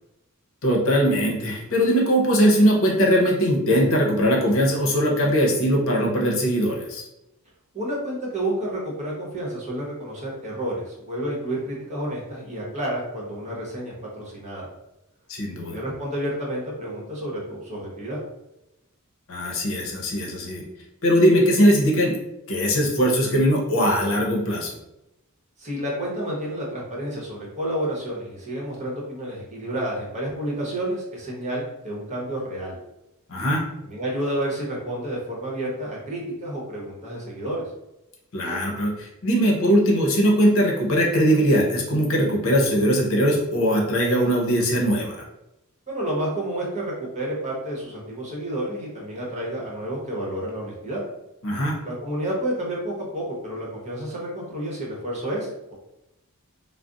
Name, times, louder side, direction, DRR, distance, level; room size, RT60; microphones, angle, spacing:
voice 1, 0.6-7.0 15.3-15.8 19.3-20.6 21.0-22.2 22.5-24.8 33.3-33.6 38.3-45.2 51.4-51.8, equal, 65° left, -1 dB, 0.7 m, -20 dB
voice 2, 7.7-14.7 15.6-18.2 25.6-32.8 33.8-37.6 45.9-51.0 51.8-55.7, right 1 dB, 35° right, -4 dB, 0.9 m, -30 dB
2.4 x 2.0 x 3.8 m, 0.89 s
head